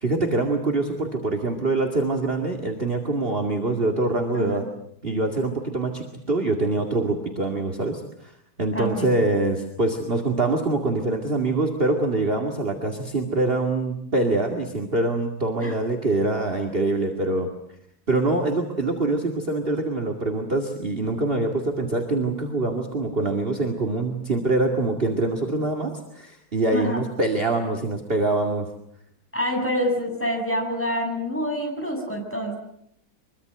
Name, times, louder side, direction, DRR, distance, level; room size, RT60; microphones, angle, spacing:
voice 1, 0.0-4.6 5.0-8.3 8.6-17.5 18.1-28.7, right 2 dB, 30° right, 2 dB, 2.5 m, -24 dB
voice 2, 8.7-9.1 15.6-15.7 26.7-27.0 29.3-32.6, equal, 5° left, 1 dB, 7.7 m, -27 dB
24.5 x 23.5 x 8.0 m, 0.73 s
omnidirectional pair, 2.1 m